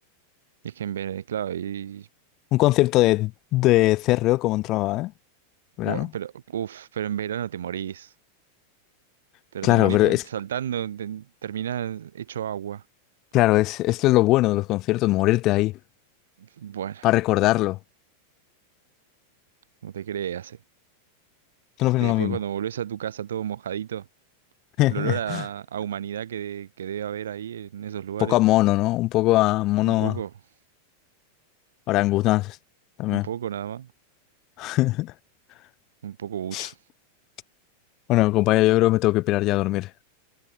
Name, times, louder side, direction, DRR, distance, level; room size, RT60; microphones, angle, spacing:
voice 1, 0.6-2.1 5.8-8.1 9.5-12.8 16.4-17.1 19.8-20.6 22.0-24.1 24.9-28.4 29.8-30.3 33.0-33.9 36.0-36.8, right 10 dB, 65° right, 0.5 m, -32 dB
voice 2, 2.5-5.1 5.8-6.1 9.6-10.2 13.3-15.7 17.0-17.8 21.8-22.4 24.8-25.4 28.2-30.2 31.9-32.6 33.0-33.3 34.6-35.1 36.5-36.7 38.1-39.9, left 18 dB, 40° left, 0.4 m, -21 dB
figure-of-eight pair, 90°, 0 cm